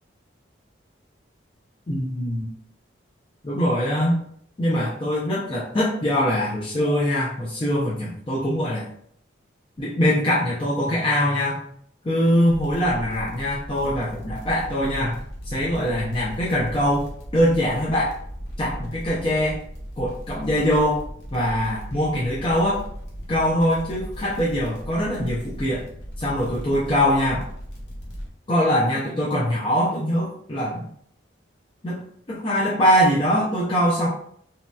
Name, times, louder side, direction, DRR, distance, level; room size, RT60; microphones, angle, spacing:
voice 1, 1.9-2.4 3.4-4.2 4.6-8.8 9.8-11.6 12.0-15.2 15.5-18.1 18.6-19.6 20.0-21.0 21.3-22.8 23.3-25.9 26.2-27.4 28.5-30.9 31.8-32.0 32.3-34.1, equal, 25° left, -6 dB, 0.5 m, -22 dB
sound 1, 12.5-28.3, equal, 70° left, 0.8 m, -37 dB
3.0 x 2.8 x 2.2 m, 0.65 s
head